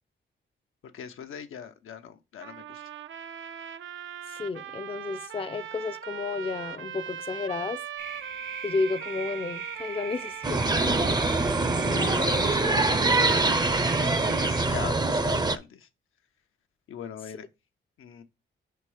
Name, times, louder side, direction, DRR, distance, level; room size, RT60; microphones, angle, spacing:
voice 1, 0.8-2.8 11.8-15.9 16.9-17.5 18.0-18.2, left 8 dB, 80° left, 0.8 m, -40 dB
sound 1, 2.4-14.0, right 9 dB, 70° right, 0.6 m, -41 dB
voice 2, 4.3-7.8 8.6-10.6, left 4 dB, 25° left, 0.5 m, -32 dB
sound 2, 8.0-14.7, right 5 dB, 85° right, 2.2 m, -40 dB
sound 3, 10.4-15.6, right 2 dB, 20° right, 0.6 m, -24 dB
5.3 x 4.4 x 4.8 m
cardioid pair, 85°, 21 cm